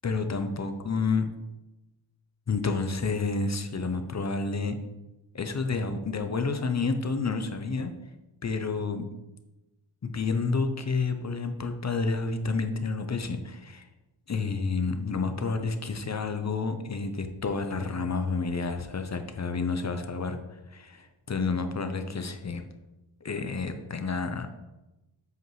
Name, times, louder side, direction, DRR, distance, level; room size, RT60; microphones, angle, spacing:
voice 1, 0.0-1.3 2.5-4.8 5.3-7.9 8.4-9.1 10.0-13.9 14.3-22.6 23.2-24.5, left 4 dB, 35° left, 8 dB, 0.6 m, -30 dB
7.7 x 5.1 x 3.1 m, 1.0 s
wide cardioid pair, 120°, 48 cm